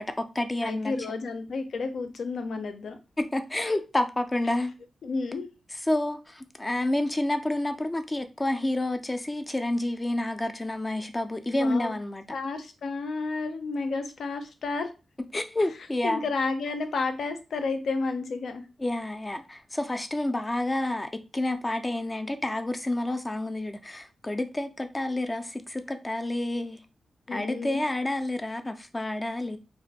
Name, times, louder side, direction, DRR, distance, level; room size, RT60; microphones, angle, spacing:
voice 1, 0.0-0.9 3.2-4.7 5.9-12.2 15.3-16.3 18.8-26.8 27.3-29.6, left 1 dB, 15° left, 0.3 m, -29 dB
voice 2, 0.6-3.0 3.7-3.8 5.0-5.5 11.5-11.9 12.3-14.9 15.3-15.4 16.0-18.7 27.3-27.8, left 4 dB, 75° left, 0.5 m, -31 dB
2.5 x 2.5 x 4.0 m
wide cardioid pair, 135°, 0 cm